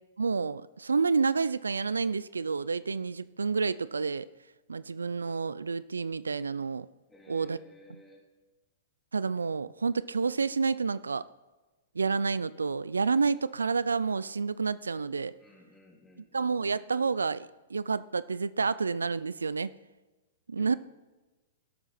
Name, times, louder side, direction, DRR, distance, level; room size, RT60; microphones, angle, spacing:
voice 1, 0.2-4.3 4.7-6.9 7.3-7.6 9.1-11.3 12.0-15.3 16.3-19.7 20.5-20.7, right 4 dB, 90° right, 18 dB, 0.3 m, -29 dB
voice 2, 7.1-8.2 15.4-16.5 20.6-20.8, left 2 dB, 10° left, -1 dB, 3.2 m, -54 dB
17.0 x 8.1 x 4.2 m, 1.2 s
hypercardioid pair, 115°, 0 cm